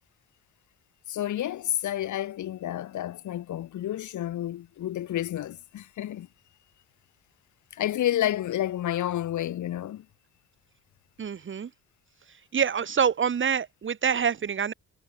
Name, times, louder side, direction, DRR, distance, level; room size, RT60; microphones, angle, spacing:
voice 1, 1.1-6.3 7.7-10.1, left 12 dB, 75° left, 3.3 m, -30 dB
voice 2, 11.2-11.7 12.5-14.7, right 7 dB, 40° right, 1.4 m, -26 dB
cardioid pair, 90°, 30 cm